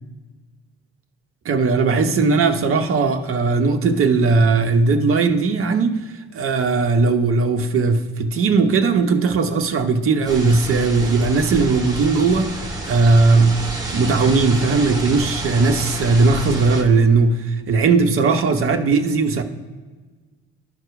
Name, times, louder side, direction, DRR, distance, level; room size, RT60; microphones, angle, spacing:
voice 1, 1.4-5.9 6.3-13.6 13.9-19.4, right 4 dB, 40° right, 1.0 m, -18 dB
sound 1, 10.3-16.8, right 1 dB, 10° right, 2.2 m, -29 dB
12.0 x 4.7 x 4.9 m
figure-of-eight pair, 50°, 33 cm